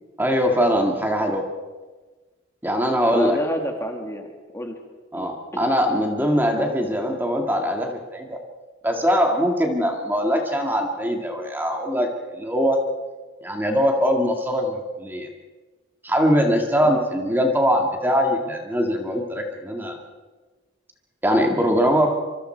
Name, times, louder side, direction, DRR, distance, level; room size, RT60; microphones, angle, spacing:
voice 1, 0.2-1.4 2.6-3.4 5.1-8.4 8.8-12.1 12.3-12.8 13.4-15.3 16.0-20.0 21.2-22.2, equal, 10° right, 3 dB, 2.1 m, -22 dB
voice 2, 3.1-4.8 5.1-5.7 16.8-17.0, equal, 15° left, 3 dB, 2.1 m, -29 dB
26.5 x 24.5 x 4.6 m, 1.3 s
head